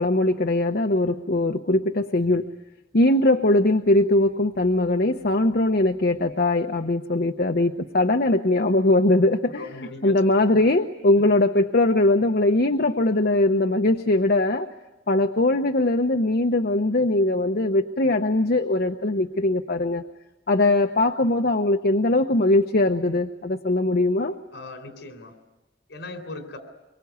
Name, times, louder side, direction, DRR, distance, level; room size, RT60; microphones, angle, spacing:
voice 1, 0.0-2.4 2.9-14.7 15.1-20.0 20.5-24.4, left 2 dB, 60° left, 5 dB, 0.9 m, -21 dB
voice 2, 9.5-10.4 11.2-11.3 24.5-25.3 25.9-26.6, left 2 dB, 80° left, 7 dB, 4.1 m, -39 dB
24.5 x 23.5 x 9.5 m, 1.0 s
head